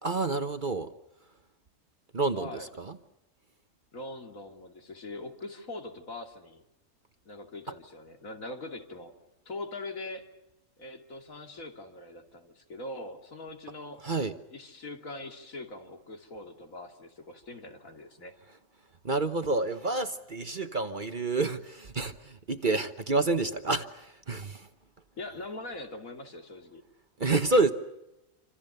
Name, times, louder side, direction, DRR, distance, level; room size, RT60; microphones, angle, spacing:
voice 1, 0.0-0.9 2.1-3.0 14.0-14.3 19.0-24.7 27.2-27.7, right 3 dB, 40° right, 1.1 m, -29 dB
voice 2, 2.3-2.7 3.9-6.6 7.3-9.1 9.5-10.3 10.8-14.0 14.5-18.3 25.1-26.8, left 2 dB, 70° left, 3.0 m, -42 dB
27.0 x 26.5 x 6.8 m
omnidirectional pair, 1.5 m